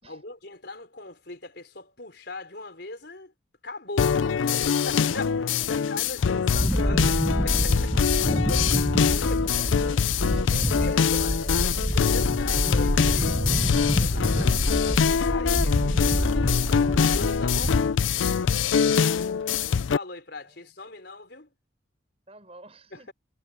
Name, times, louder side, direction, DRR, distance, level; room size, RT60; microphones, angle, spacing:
voice 1, 0.1-3.3 3.6-8.1 9.2-9.7 10.5-13.4 14.0-17.8 19.3-21.5, left 2 dB, 55° left, 5.0 m, -40 dB
sound 1, 4.0-20.0, left 6 dB, 80° left, 0.4 m, -24 dB
sound 2, 6.5-17.8, equal, 5° right, 1.2 m, -27 dB
voice 2, 8.0-9.0 9.4-11.0 16.6-17.2 18.2-18.7 20.4-20.6 22.3-23.1, right 1 dB, 30° right, 6.6 m, -50 dB
head